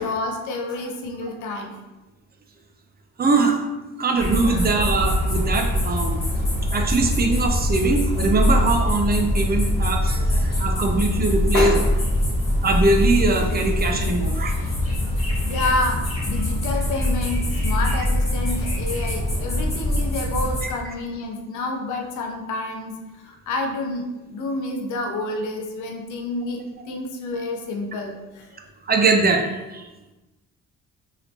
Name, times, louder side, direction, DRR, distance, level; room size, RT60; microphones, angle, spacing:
voice 1, 0.0-1.8 4.5-4.6 11.5-11.9 15.5-26.6 26.9-28.5, left 2 dB, 75° left, 2 dB, 0.7 m, -29 dB
voice 2, 3.2-3.5 4.0-6.2 6.7-11.7 12.6-14.5 20.6-20.7 28.9-29.4 29.7-29.8, right 3 dB, 30° right, 3 dB, 0.5 m, -21 dB
sound 1, 4.2-20.6, left 1 dB, 20° left, 1.1 m, -23 dB
3.1 x 2.8 x 2.8 m, 1.1 s
cardioid pair, 90°, 30 cm